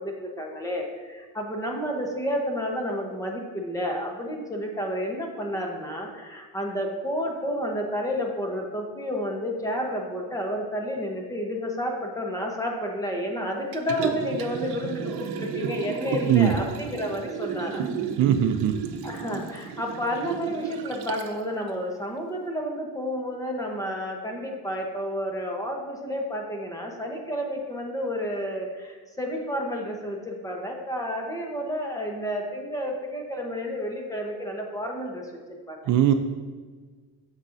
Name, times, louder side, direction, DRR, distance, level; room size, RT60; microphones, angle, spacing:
voice 1, 0.0-17.8 19.0-35.9, equal, 10° left, 0 dB, 0.9 m, -31 dB
Liquid, 13.7-21.4 21.8-21.9, right 7 dB, 75° right, 0.8 m, -33 dB
voice 2, 18.2-18.7 35.9-36.1, right 10 dB, 55° right, 7 dB, 0.5 m, -20 dB
9.5 x 7.2 x 2.6 m, 1.5 s
cardioid pair, 150°, 39 cm